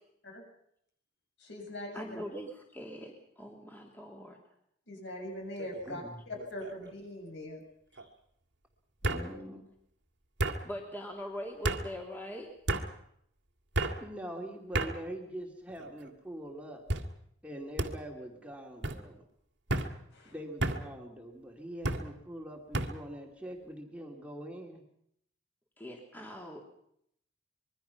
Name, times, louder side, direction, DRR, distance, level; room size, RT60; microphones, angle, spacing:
voice 1, 1.4-2.2 4.9-7.6 9.0-9.3 20.1-20.4, left 1 dB, 60° left, 2 dB, 7.4 m, -42 dB
voice 2, 1.9-4.4 8.0-8.1 10.6-12.5 25.8-26.7, equal, 10° left, 0 dB, 2.9 m, -42 dB
sound 1, 5.6-6.0 6.4-6.9 8.0-8.1 9.0-9.3 10.4-10.6 11.6-11.8 12.7-12.9 13.7-14.0 14.7-14.9 15.7-16.1 16.9-17.1 17.8-17.9 18.8-19.0 19.7-19.9 20.6-20.8 21.8-22.0 22.7-22.9, right 2 dB, 60° right, 2.0 m, -31 dB
voice 3, 9.1-9.6 14.0-16.8 17.4-19.2 20.3-24.8, right 1 dB, 5° right, 1 dB, 2.5 m, -43 dB
25.5 x 22.0 x 5.8 m, 0.72 s
head